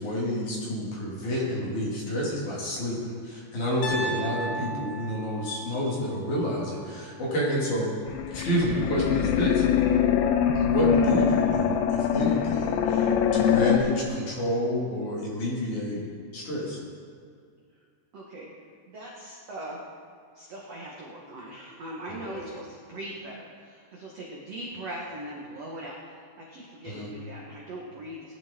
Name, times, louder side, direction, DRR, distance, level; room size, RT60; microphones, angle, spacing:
voice 1, 0.0-7.9 8.3-9.6 10.5-16.0 16.3-16.8 22.3-22.4 26.8-27.1, equal, 50° left, -5 dB, 3.4 m, -29 dB
Piano, 3.8-7.9, right 1 dB, 70° left, 2.4 m, -37 dB
voice 2, 4.0-4.4 18.1-18.5 18.9-19.8 20.3-28.3, right 1 dB, 70° right, -3 dB, 1.5 m, -40 dB
sound 1, 8.1-13.8, left 8 dB, 85° left, 2.9 m, -23 dB
19.0 x 11.0 x 3.7 m, 2.2 s
omnidirectional pair, 5.0 m